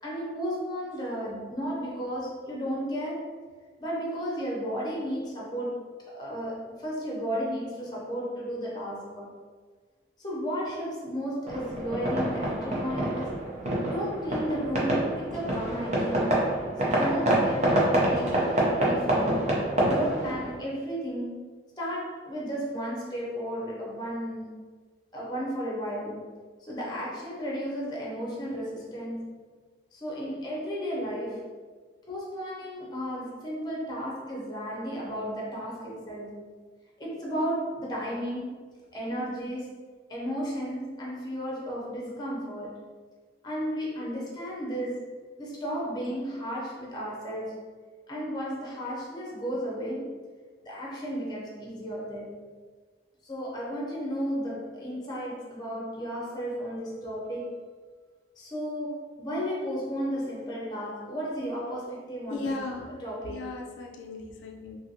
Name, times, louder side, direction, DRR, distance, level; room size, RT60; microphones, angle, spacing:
voice 1, 0.0-3.3 3.8-9.3 10.2-13.5 13.8-16.4 16.8-19.4 19.8-21.4 21.8-24.6 25.1-26.3 26.6-29.3 29.9-31.5 32.1-36.5 37.0-38.6 38.9-39.8 40.1-42.9 43.4-45.1 45.4-47.7 48.1-50.2 50.6-52.4 53.2-57.6 58.4-62.7 63.0-63.5, equal, 25° left, -4 dB, 0.7 m, -34 dB
sound 1, 11.5-20.6, right 1 dB, 40° right, 0.6 m, -27 dB
voice 2, 62.3-64.8, left 3 dB, 85° left, 2 dB, 0.3 m, -36 dB
2.6 x 2.5 x 2.8 m, 1.5 s
head